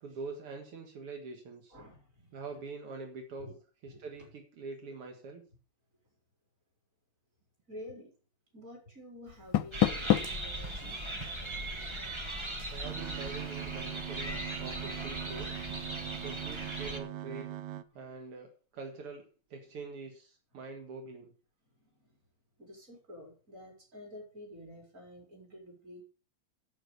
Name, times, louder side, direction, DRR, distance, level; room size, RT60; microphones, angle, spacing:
voice 1, 0.0-1.8 2.3-3.5 3.8-5.4 12.7-15.5 16.2-17.5 17.9-19.2 19.5-21.3, right 4 dB, 85° right, 3 dB, 2.7 m, -44 dB
voice 2, 1.7-2.3 3.4-3.5 3.9-4.1 7.7-8.1 8.5-11.0 12.3-12.5 17.9-18.2 22.6-26.1, left 1 dB, 35° right, 0 dB, 4.7 m, -49 dB
Door, 9.3-10.5, left 12 dB, 70° left, 1.1 m, -28 dB
sound 1, 9.7-17.0, right 1 dB, 20° right, 0.9 m, -39 dB
sound 2, 12.8-17.8, right 12 dB, 65° right, 1.1 m, -41 dB
8.5 x 8.1 x 6.5 m, 0.37 s
omnidirectional pair, 2.4 m